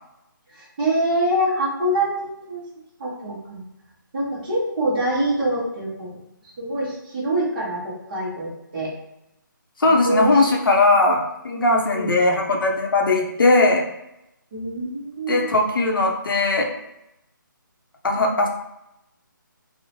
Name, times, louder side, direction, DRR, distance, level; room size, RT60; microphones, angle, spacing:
voice 1, 0.5-2.6 3.0-3.6 4.1-6.2 6.6-8.9 10.0-10.5 11.9-12.1 14.5-15.5 18.1-18.4, right 1 dB, 25° right, -9 dB, 0.7 m, -25 dB
voice 2, 9.8-13.9 15.3-16.7 18.0-18.5, left 2 dB, 85° left, 1 dB, 0.7 m, -19 dB
3.0 x 2.0 x 2.8 m, 0.85 s
hypercardioid pair, 170°, 11 cm